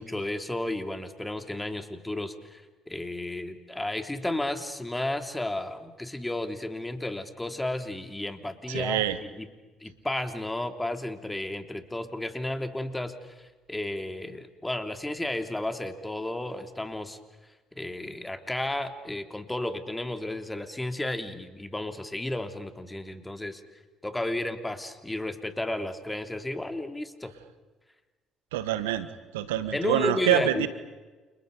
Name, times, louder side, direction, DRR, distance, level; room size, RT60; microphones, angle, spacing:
voice 1, 0.0-9.5 9.8-17.2 17.7-23.6 24.0-27.3 29.7-30.7, left 1 dB, 10° left, 7 dB, 3.4 m, -33 dB
voice 2, 8.7-9.2 28.5-29.1 29.3-30.7, right 12 dB, 80° right, 13 dB, 1.4 m, -26 dB
30.0 x 29.5 x 5.4 m, 1.3 s
hypercardioid pair, 55°, 0 cm